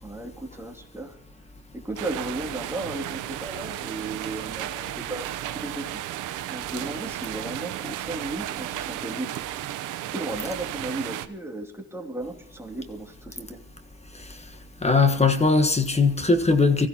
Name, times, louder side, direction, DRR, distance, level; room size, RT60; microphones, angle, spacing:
voice 1, 0.0-1.2 1.7-6.1 6.5-9.5 10.1-13.6, right 2 dB, 10° right, 2.7 m, -35 dB
sound 1, 2.0-11.3, right 13 dB, 90° right, 0.8 m, -34 dB
voice 2, 14.8-16.9, left 3 dB, 20° left, 1.4 m, -20 dB
23.5 x 15.0 x 2.9 m
cardioid pair, 90°, 30 cm